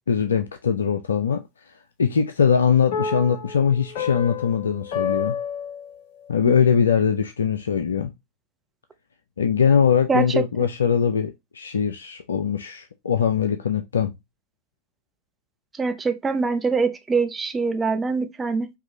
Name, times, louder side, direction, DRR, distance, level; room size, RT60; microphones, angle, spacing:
voice 1, 0.1-1.4 2.0-5.3 6.3-8.1 9.4-14.1, left 7 dB, 70° left, 0.4 m, -21 dB
sound 1, 2.9-6.4, left 7 dB, 50° left, 0.8 m, -29 dB
voice 2, 15.8-18.7, right 4 dB, 15° right, 0.6 m, -23 dB
4.8 x 2.7 x 2.8 m
figure-of-eight pair, 90°, 0 cm